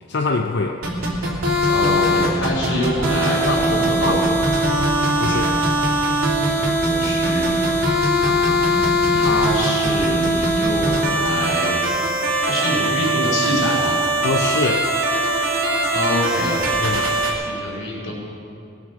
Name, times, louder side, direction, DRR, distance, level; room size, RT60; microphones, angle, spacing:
voice 1, 0.1-0.8 5.2-5.6 14.2-14.9 16.8-17.3, left 3 dB, 55° left, 3 dB, 0.6 m, -23 dB
sound 1, 0.8-17.3, right 1 dB, 70° right, 2.8 m, -20 dB
voice 2, 1.7-4.1 6.3-7.6 8.1-11.7 12.4-14.0 15.9-16.6 17.3-18.1, left 1 dB, 75° left, -3 dB, 4.3 m, -25 dB
20.0 x 7.4 x 6.4 m, 2.5 s
head